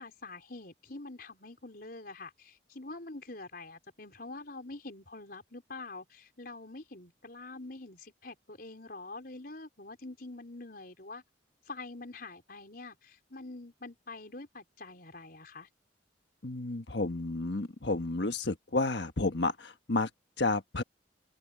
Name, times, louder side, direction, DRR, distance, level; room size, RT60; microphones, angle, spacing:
voice 1, 0.0-11.2 11.7-15.7, left 2 dB, 50° left, 5.1 m, -45 dB
voice 2, 16.4-20.1 20.4-20.8, left 2 dB, 70° left, 1.5 m, -31 dB
head